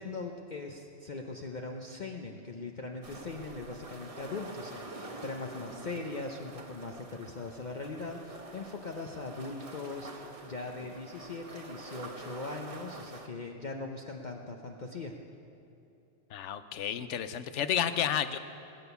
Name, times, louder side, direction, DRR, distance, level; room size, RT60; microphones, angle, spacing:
voice 1, 0.0-15.1, left 3 dB, 45° left, 2 dB, 0.8 m, -40 dB
sound 1, 3.0-13.3, right 2 dB, 30° right, 1.0 m, -47 dB
voice 2, 16.3-18.4, left 9 dB, 75° left, 12 dB, 1.0 m, -31 dB
20.0 x 9.1 x 6.9 m, 2.8 s
omnidirectional pair, 1.2 m